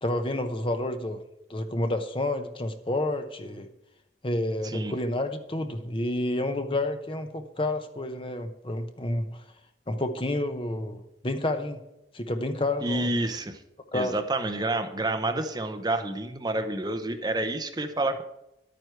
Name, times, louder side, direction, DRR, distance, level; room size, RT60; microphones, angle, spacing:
voice 1, 0.0-1.2 1.5-3.7 4.2-9.4 9.9-11.8 12.1-13.1 13.9-14.2, left 1 dB, 30° left, 7 dB, 0.8 m, -29 dB
voice 2, 4.6-4.9 12.8-13.6 13.9-18.2, right 2 dB, 20° right, 7 dB, 0.7 m, -29 dB
11.5 x 9.3 x 4.6 m, 0.87 s
head